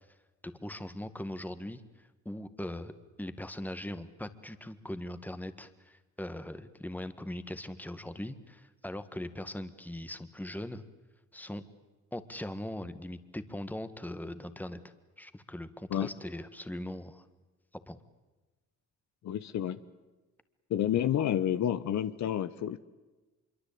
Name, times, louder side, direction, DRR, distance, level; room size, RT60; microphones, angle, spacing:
voice 1, 0.4-2.9 3.2-10.8 11.3-11.6 12.1-14.8 15.2-17.3 17.9-18.0, left 1 dB, 5° left, 11 dB, 1.7 m, -40 dB
voice 2, 19.2-19.8 20.7-22.8, left 10 dB, 65° left, 13 dB, 1.1 m, -29 dB
25.5 x 23.5 x 8.6 m, 1.2 s
cardioid pair, 90°, 30 cm